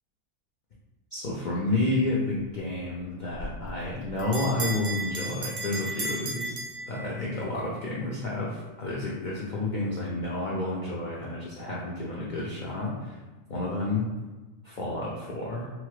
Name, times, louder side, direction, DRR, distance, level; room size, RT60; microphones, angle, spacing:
voice 1, 1.1-6.6 6.9-13.2 13.5-14.1 14.6-15.7, left 2 dB, 90° left, -5 dB, 0.4 m, -30 dB
Bell, 3.4-7.5, right 2 dB, 65° right, 0.4 m, -35 dB
2.9 x 2.3 x 3.0 m, 1.2 s
omnidirectional pair, 1.5 m